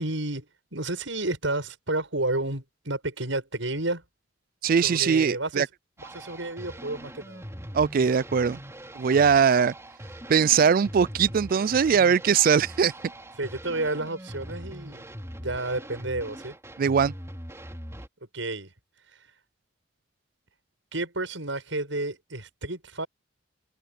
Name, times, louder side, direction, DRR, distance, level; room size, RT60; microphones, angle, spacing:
voice 1, 0.0-4.0 4.8-5.6 6.0-7.4 13.4-15.0 15.4-16.5 18.3-18.7 20.9-23.1, right 2 dB, 75° right, 7.9 m, -31 dB
voice 2, 4.6-5.7 7.7-8.6 9.0-9.7 10.3-12.9 16.8-17.1, right 6 dB, 45° right, 0.4 m, -21 dB
sound 1, 6.0-18.1, right 1 dB, 15° right, 3.6 m, -42 dB
open air
head